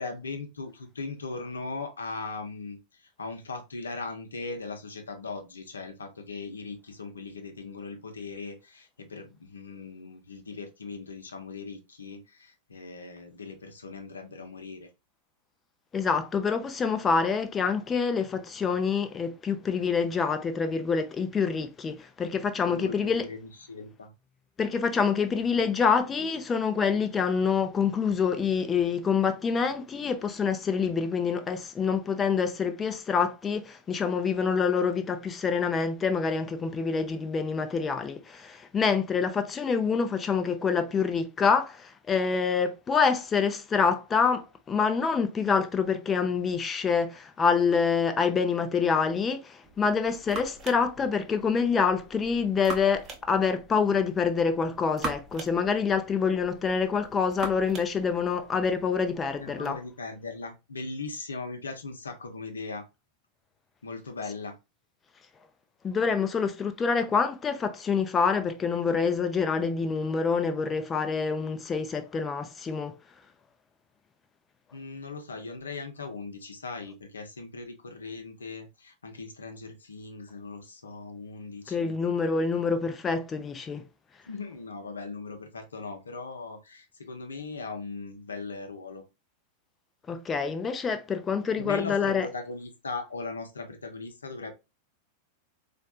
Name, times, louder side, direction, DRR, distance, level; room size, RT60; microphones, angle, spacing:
voice 1, 0.0-14.9 22.6-23.4 23.7-24.1 59.4-62.9 63.8-64.6 74.7-81.9 84.3-89.0 91.6-94.5, left 3 dB, 75° left, 0.8 m, -39 dB
voice 2, 15.9-23.3 24.6-59.8 65.8-72.9 81.7-83.8 90.1-92.3, left 5 dB, 20° left, 0.5 m, -26 dB
sound 1, 49.6-59.8, right 3 dB, 30° right, 0.9 m, -43 dB
4.3 x 2.5 x 2.3 m
figure-of-eight pair, 90°, 0 cm